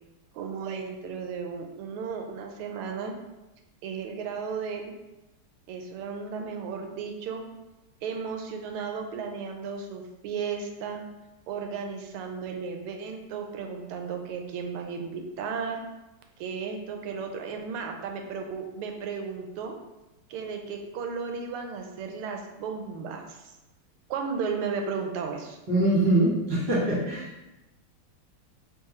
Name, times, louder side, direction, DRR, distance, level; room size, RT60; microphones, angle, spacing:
voice 1, 0.3-3.1 3.8-4.9 5.7-7.4 8.0-11.0 11.5-15.8 16.4-19.8 20.3-23.5 24.1-25.6, right 5 dB, 85° right, 3 dB, 1.5 m, -34 dB
voice 2, 25.7-27.3, right 1 dB, 25° right, -6 dB, 1.2 m, -23 dB
4.6 x 2.9 x 3.0 m, 1.0 s
omnidirectional pair, 2.4 m